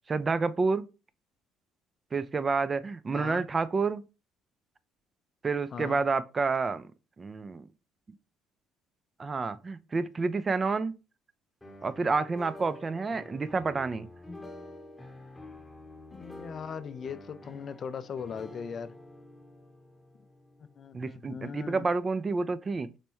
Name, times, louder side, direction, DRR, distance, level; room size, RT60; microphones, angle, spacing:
voice 1, 0.1-0.9 2.1-4.0 5.4-6.9 7.2-7.6 9.2-10.9 11.8-14.1 20.9-22.9, right 4 dB, 35° right, 0.3 m, -29 dB
voice 2, 5.7-6.0 16.1-18.9 20.8-21.9, left 7 dB, 50° left, 0.4 m, -39 dB
sound 1, 11.6-21.5, left 1 dB, 15° left, 0.8 m, -48 dB
4.2 x 2.2 x 2.9 m
supercardioid pair, 70°, 0 cm